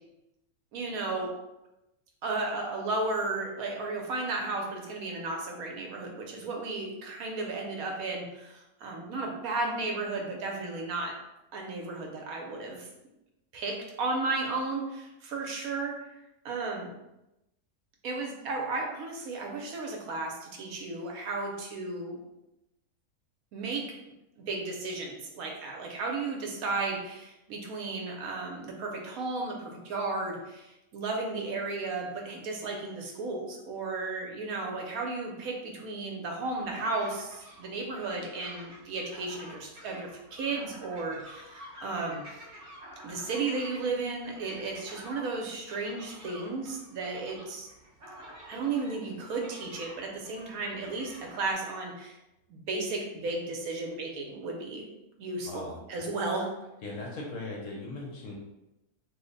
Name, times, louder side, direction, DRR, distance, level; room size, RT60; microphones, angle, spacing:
voice 1, 0.7-1.3 2.2-11.1 11.5-12.9 13.5-16.0 16.4-16.9 18.0-22.2 23.5-23.9 24.5-42.4 43.0-47.7 48.5-52.2 52.5-54.9 55.2-56.5, right 3 dB, 70° right, 1 dB, 1.0 m, -34 dB
sound 1, 36.4-51.5, right 1 dB, 45° right, 0.9 m, -49 dB
voice 2, 55.4-55.8 56.8-58.3, left 2 dB, 65° left, -2 dB, 0.9 m, -38 dB
3.2 x 2.1 x 3.8 m, 0.93 s
omnidirectional pair, 1.7 m